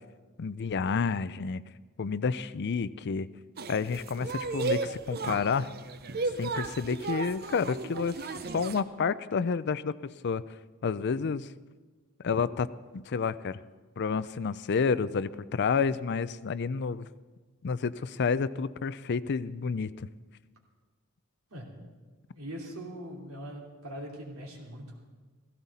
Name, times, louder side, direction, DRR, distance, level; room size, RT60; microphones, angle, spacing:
voice 1, 0.4-1.6 2.0-3.3 3.7-5.7 6.4-8.2 8.5-9.9 10.2-10.4 10.8-11.5 12.2-12.7 12.9-13.6 14.0-17.1 17.6-20.1, left 5 dB, 50° left, 16 dB, 0.4 m, -29 dB
sound 1, 3.6-8.8, right 4 dB, 45° right, 0.7 m, -34 dB
voice 2, 21.5-21.9 22.3-25.0, equal, 75° right, -2 dB, 3.0 m, -42 dB
16.0 x 16.0 x 4.2 m, 1.4 s
head